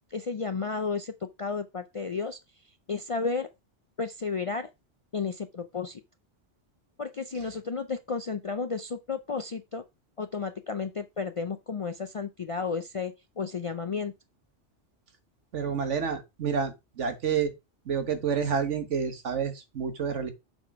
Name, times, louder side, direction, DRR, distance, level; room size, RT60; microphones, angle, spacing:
voice 1, 0.1-1.1 1.4-2.4 2.9-3.5 4.0-4.7 5.1-6.0 7.0-9.8 10.2-14.1, left 5 dB, 55° left, 0.3 m, -32 dB
voice 2, 15.5-17.5 17.9-20.3, right 6 dB, 85° right, 1.5 m, -29 dB
6.9 x 4.0 x 4.6 m
omnidirectional pair, 1.2 m